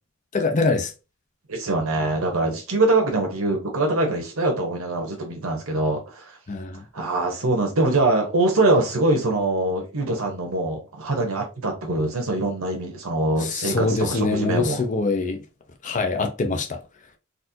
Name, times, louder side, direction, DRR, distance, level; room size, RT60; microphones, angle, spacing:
voice 1, 0.3-0.9 6.5-6.8 13.4-15.4 15.8-16.8, left 3 dB, 40° left, 0.6 m, -24 dB
voice 2, 1.5-6.4 6.9-14.8, right 2 dB, 85° right, 1.0 m, -23 dB
4.2 x 2.4 x 2.7 m
head